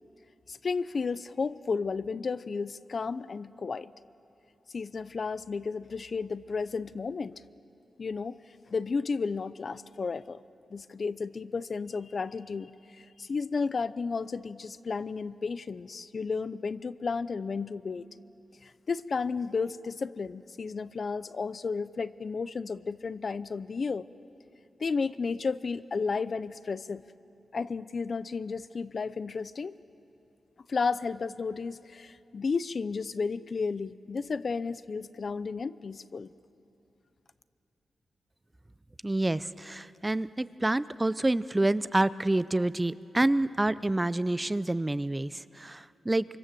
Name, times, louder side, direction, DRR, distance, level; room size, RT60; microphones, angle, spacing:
voice 1, 0.5-3.9 4.7-7.3 8.0-8.4 8.7-10.4 10.7-18.1 18.6-24.1 24.8-27.0 27.5-29.7 30.7-36.3, left 4 dB, 50° left, 15 dB, 0.6 m, -33 dB
voice 2, 39.0-46.3, right 2 dB, 15° right, 16 dB, 0.5 m, -28 dB
25.5 x 25.0 x 7.6 m, 2.9 s
wide cardioid pair, 95°, 0 cm